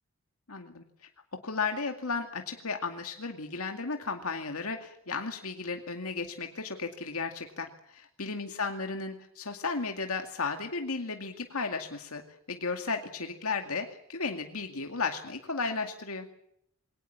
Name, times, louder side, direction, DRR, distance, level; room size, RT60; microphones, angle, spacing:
voice 1, 0.5-1.1 1.4-12.2 12.5-16.3, left 4 dB, 80° left, 4 dB, 2.3 m, -34 dB
23.0 x 18.5 x 8.7 m, 0.72 s
head